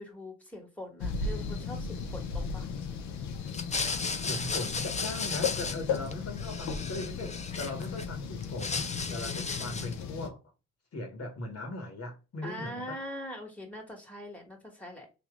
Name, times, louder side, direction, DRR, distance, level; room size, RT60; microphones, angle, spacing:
voice 1, 0.0-2.7 9.1-9.9 12.4-15.1, left 1 dB, 5° left, 1.9 m, -43 dB
sound 1, 1.0-10.3, left 5 dB, 80° left, 0.8 m, -36 dB
얼음흔드는쪼로록, 3.5-6.1 6.4-8.0 8.4-10.0, left 4 dB, 25° left, 0.6 m, -35 dB
voice 2, 4.2-10.4 10.9-13.0, left 2 dB, 55° left, 1.4 m, -39 dB
3.0 x 2.8 x 3.6 m
cardioid pair, 65°, 29 cm